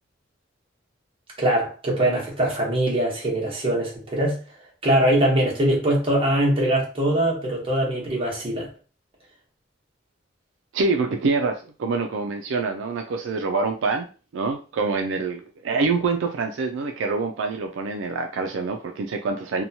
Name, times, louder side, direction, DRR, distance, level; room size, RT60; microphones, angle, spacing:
voice 1, 1.4-4.4 4.8-8.7, right 1 dB, 30° right, 0.9 m, -22 dB
voice 2, 10.7-14.1 14.3-19.6, right 4 dB, 75° right, 0.3 m, -25 dB
2.8 x 2.2 x 2.7 m
head